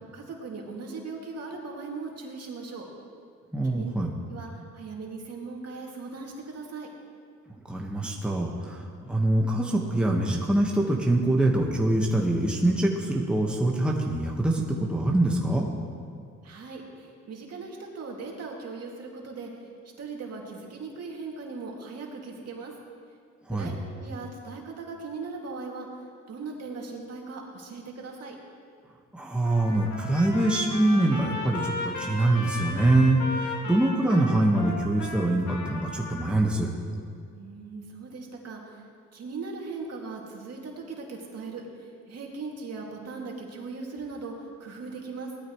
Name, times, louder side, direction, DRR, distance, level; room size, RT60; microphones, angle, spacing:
voice 1, 0.1-2.9 3.6-3.9 4.3-4.5 4.7-6.9 16.4-19.7 20.0-22.8 23.5-28.4 37.3-45.3, right 4 dB, 55° right, -1 dB, 2.6 m, -39 dB
voice 2, 3.5-4.1 7.7-15.7 23.5-23.7 29.1-36.7, right 1 dB, 5° right, -1 dB, 1.5 m, -24 dB
Trumpet, 29.4-36.3, left 3 dB, 70° left, 2.4 m, -36 dB
19.0 x 13.0 x 3.2 m, 2.2 s
cardioid pair, 90°, 30 cm